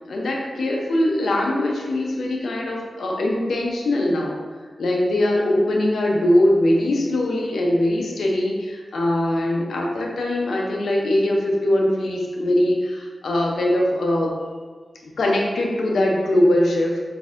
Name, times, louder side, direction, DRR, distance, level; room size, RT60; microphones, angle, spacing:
voice 1, 0.1-4.4 4.8-14.3 15.0-17.0, left 1 dB, 90° left, -1 dB, 0.5 m, -21 dB
4.1 x 2.6 x 2.4 m, 1.5 s
wide cardioid pair, 110°, 0 cm